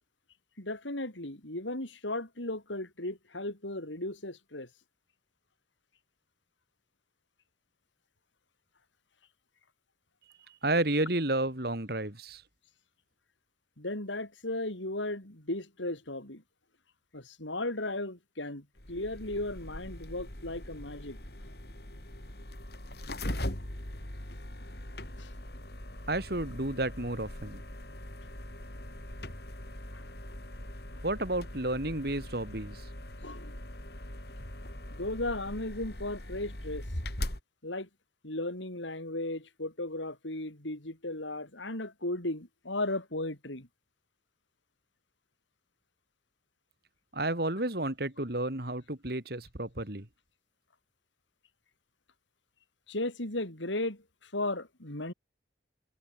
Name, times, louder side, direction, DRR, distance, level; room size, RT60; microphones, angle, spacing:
voice 1, 0.6-4.7 13.8-16.4 17.1-21.2 24.6-24.8 25.2-25.3 29.9-30.0 33.2-33.6 34.9-36.9 37.6-37.9 38.2-43.7 52.9-55.1, left 2 dB, 80° left, 5.3 m, -36 dB
voice 2, 10.6-12.4 26.1-27.6 31.0-32.8 47.1-50.1, right 2 dB, 55° right, 2.7 m, -31 dB
sound 1, 18.8-37.4, left 1 dB, 55° left, 5.0 m, -41 dB
head